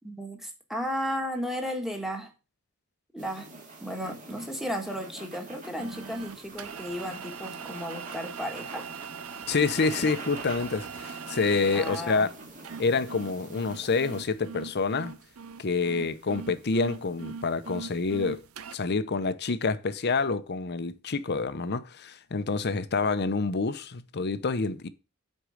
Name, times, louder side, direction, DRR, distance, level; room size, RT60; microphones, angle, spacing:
voice 1, 0.0-2.3 3.1-3.5 3.8-8.9 11.7-12.3, equal, ahead, 1.6 m, -34 dB
sound 1, 3.2-14.3, right 2 dB, 40° right, 2.3 m, -45 dB
sound 2, 5.8-18.8, right 6 dB, 80° right, 0.6 m, -41 dB
voice 2, 9.5-12.3 12.8-15.2 15.6-18.4 18.7-24.9, left 4 dB, 50° left, 0.7 m, -27 dB
8.1 x 4.6 x 6.3 m
head